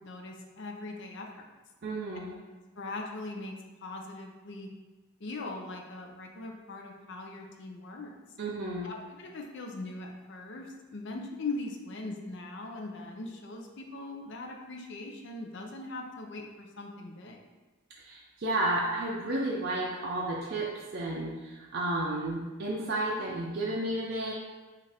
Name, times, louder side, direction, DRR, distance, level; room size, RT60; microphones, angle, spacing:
voice 1, 0.0-1.5 2.8-3.5 3.8-4.7 5.2-8.1 8.8-17.4, left 2 dB, 55° left, 2 dB, 0.5 m, -40 dB
voice 2, 1.8-2.3 8.4-8.9 18.0-24.3, right 1 dB, 45° right, -4 dB, 0.5 m, -32 dB
5.3 x 2.5 x 3.4 m, 1.2 s
head